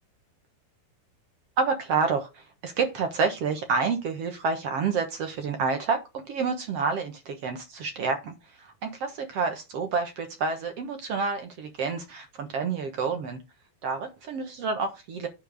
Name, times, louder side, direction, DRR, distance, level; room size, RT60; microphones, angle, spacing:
voice 1, 1.6-13.4 13.8-15.3, right 5 dB, 60° right, 6 dB, 1.8 m, -29 dB
11.0 x 4.5 x 4.8 m, 0.26 s
omnidirectional pair, 4.3 m